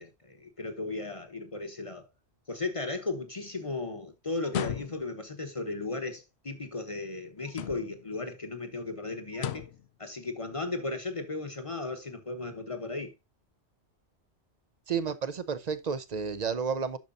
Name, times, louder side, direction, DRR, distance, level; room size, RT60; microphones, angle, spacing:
voice 1, 0.0-2.1 2.5-9.6 10.0-13.1, left 3 dB, 30° left, 1.2 m, -36 dB
sound 1, 4.4-5.3 7.5-8.1 9.3-9.9, left 9 dB, 75° left, 0.9 m, -36 dB
voice 2, 14.9-17.0, right 6 dB, 40° right, 0.8 m, -31 dB
10.5 x 6.6 x 2.6 m
omnidirectional pair, 1.1 m